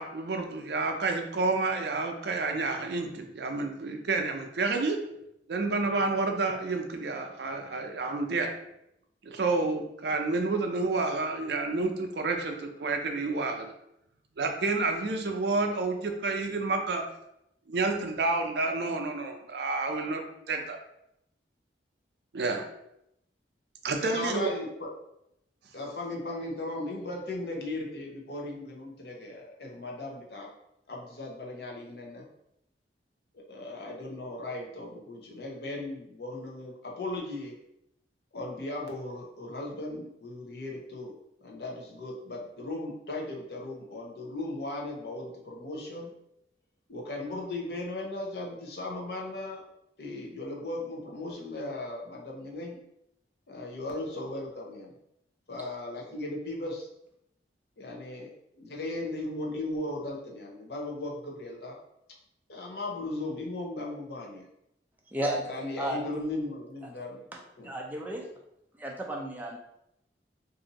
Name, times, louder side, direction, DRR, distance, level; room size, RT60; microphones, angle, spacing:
voice 1, 0.0-5.0 5.5-8.5 9.2-13.7 14.4-17.0 17.7-20.2 20.5-20.8 22.3-22.6 23.8-24.5, right 3 dB, 65° right, 4 dB, 0.5 m, -29 dB
voice 2, 24.0-24.9 25.7-30.5 30.9-32.3 33.3-37.6 38.3-41.1 41.4-46.1 46.9-49.6 50.0-52.8 53.5-54.9 55.5-56.9 57.8-61.8 62.5-64.5 65.5-67.3 67.6-67.7, left 2 dB, 60° left, -1 dB, 0.8 m, -37 dB
voice 3, 65.1-65.5 65.8-66.2 67.3-68.3 68.8-69.6, right 1 dB, 10° right, 0 dB, 0.4 m, -33 dB
2.7 x 2.5 x 4.0 m, 0.81 s
head